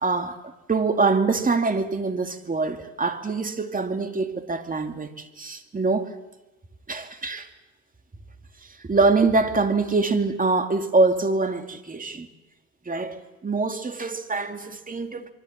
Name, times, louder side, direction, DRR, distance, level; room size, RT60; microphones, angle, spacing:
voice 1, 0.0-6.1 6.9-7.5 8.8-12.3 12.9-15.3, right 3 dB, 25° right, 2.4 m, -24 dB
25.0 x 24.0 x 7.3 m
cardioid pair, 90°, 30 cm